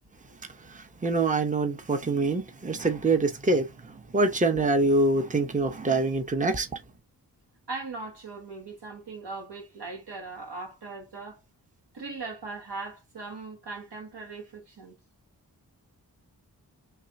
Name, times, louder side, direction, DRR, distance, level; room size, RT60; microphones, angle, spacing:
voice 1, 0.6-6.7, right 2 dB, 20° right, 0.8 m, -25 dB
voice 2, 7.7-11.4 11.9-15.0, right 3 dB, 80° right, 2.0 m, -39 dB
3.4 x 2.3 x 4.0 m
cardioid pair, 50°, 39 cm